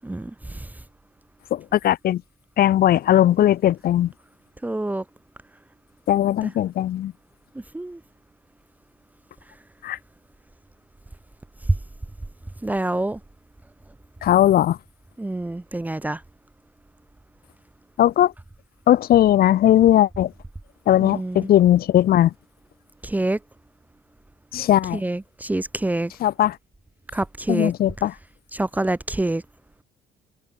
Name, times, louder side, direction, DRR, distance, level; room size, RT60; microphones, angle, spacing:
voice 1, 0.0-0.7 4.6-5.0 6.4-6.5 7.7-8.0 12.6-13.2 15.2-16.2 21.0-21.5 23.0-23.4 24.9-26.1 27.1-27.7 28.5-29.4, right 2 dB, 10° right, 1.4 m, -26 dB
voice 2, 1.5-2.2 2.6-4.1 6.1-7.1 9.8-10.0 14.2-14.8 18.0-18.3 18.9-20.3 20.9-22.3 24.5-25.0 26.2-26.6 27.5-28.1, left 12 dB, 65° left, 3.6 m, -18 dB
cardioid pair, 110°, 17 cm